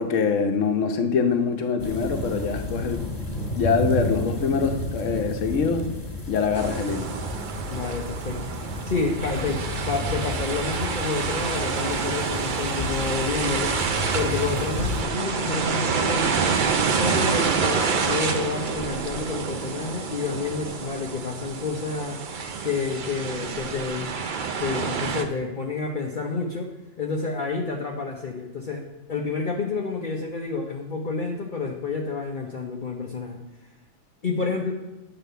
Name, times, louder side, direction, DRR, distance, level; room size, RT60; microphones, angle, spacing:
voice 1, 0.0-3.1 3.5-5.9 6.3-7.1, left 5 dB, 80° left, 1.2 m, -24 dB
sound 1, 1.8-15.0, left 1 dB, 30° left, 1.9 m, -32 dB
sound 2, 6.5-25.2, right 5 dB, 50° right, 0.7 m, -28 dB
voice 2, 7.7-8.5 8.8-13.8 14.1-16.5 17.0-22.2 22.6-24.1 24.6-26.7 27.0-33.4 34.2-34.7, left 4 dB, 45° left, 0.9 m, -29 dB
9.5 x 4.0 x 6.8 m
omnidirectional pair, 1.3 m